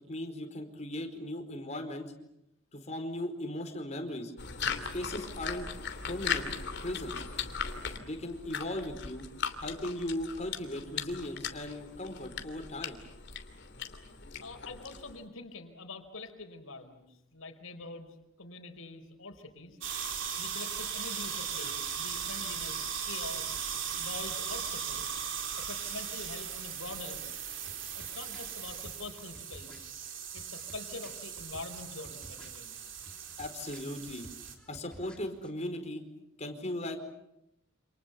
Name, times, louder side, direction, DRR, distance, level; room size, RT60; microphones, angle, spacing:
voice 1, 0.1-2.1 2.7-4.3 4.9-5.7 6.1-6.5 6.8-7.2 7.9-9.3 9.6-13.0 33.4-34.3 34.7-36.0 36.4-37.0, left 1 dB, 35° left, 5 dB, 4.5 m, -37 dB
sound 1, 4.4-15.2, left 6 dB, 55° left, 2.9 m, -38 dB
voice 2, 14.4-19.8 20.1-23.6 23.9-25.0 25.6-27.4 27.9-29.9 30.3-32.8, left 3 dB, 80° left, 6 dB, 4.5 m, -45 dB
sound 2, 19.8-34.5, right 7 dB, 60° right, 4.2 m, -38 dB
sound 3, 27.5-35.5, equal, 5° left, 3.3 m, -55 dB
28.5 x 28.0 x 7.0 m, 0.82 s
head